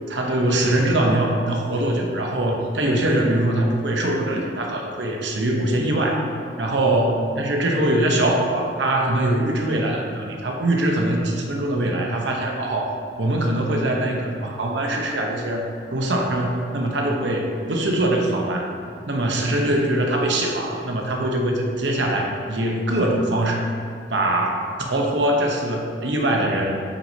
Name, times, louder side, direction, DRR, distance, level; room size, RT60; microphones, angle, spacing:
voice 1, 0.1-6.2 6.6-12.9 13.2-18.7 19.1-23.7 24.1-26.7, right 1 dB, 80° right, 1 dB, 0.9 m, -22 dB
8.3 x 6.1 x 2.8 m, 2.4 s
head